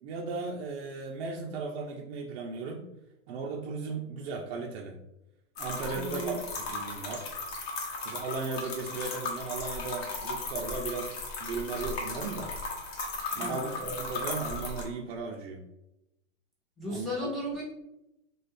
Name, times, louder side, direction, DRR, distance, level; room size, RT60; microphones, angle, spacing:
voice 1, 0.0-2.9 3.3-5.0 5.6-7.3 8.0-12.5 13.4-15.6 16.9-17.3, right 4 dB, 55° right, 0 dB, 0.5 m, -36 dB
sound 1, 5.6-14.8, left 3 dB, 60° left, 0.9 m, -36 dB
voice 2, 5.9-6.4 13.3-13.9 16.8-17.6, equal, ahead, -9 dB, 1.0 m, -35 dB
2.5 x 2.3 x 3.2 m, 0.88 s
hypercardioid pair, 130°, 36 cm